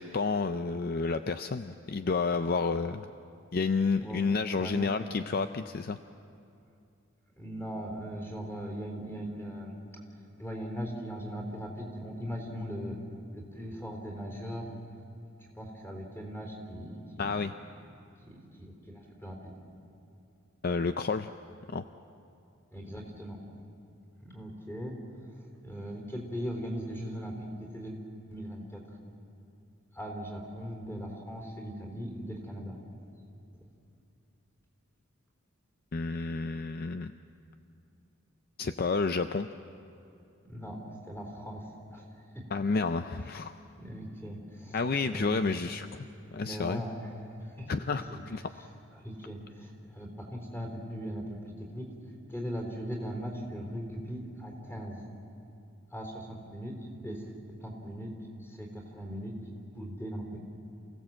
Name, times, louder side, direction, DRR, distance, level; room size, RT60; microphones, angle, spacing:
voice 1, 0.0-3.1 3.5-6.0 17.2-17.5 20.6-21.3 21.7-21.9 35.9-37.1 38.6-39.5 42.5-43.6 44.7-45.9 46.3-46.8 47.7-48.4, left 4 dB, 45° left, 9 dB, 0.4 m, -30 dB
voice 2, 4.0-4.3 4.6-4.9 7.4-9.8 10.4-13.0 13.3-14.7 15.4-17.4 18.2-19.5 22.7-23.4 24.2-25.0 25.3-28.0 28.3-28.8 29.9-32.8 40.5-42.6 43.7-45.5 46.2-48.2 48.9-51.9 52.3-55.0 55.9-57.3 57.6-58.1 58.4-59.4 59.7-60.4, equal, 10° left, -1 dB, 3.8 m, -39 dB
28.5 x 17.0 x 7.7 m, 2.5 s
head